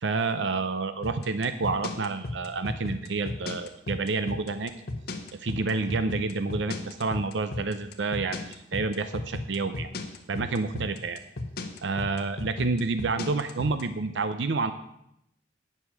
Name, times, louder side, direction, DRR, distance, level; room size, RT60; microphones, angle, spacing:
voice 1, 0.0-4.7 5.4-9.9 10.3-11.2 11.8-14.7, right 3 dB, 80° right, 11 dB, 0.6 m, -29 dB
sound 1, 1.0-13.8, left 2 dB, 60° left, 1.4 m, -34 dB
10.0 x 8.1 x 7.3 m, 0.79 s
head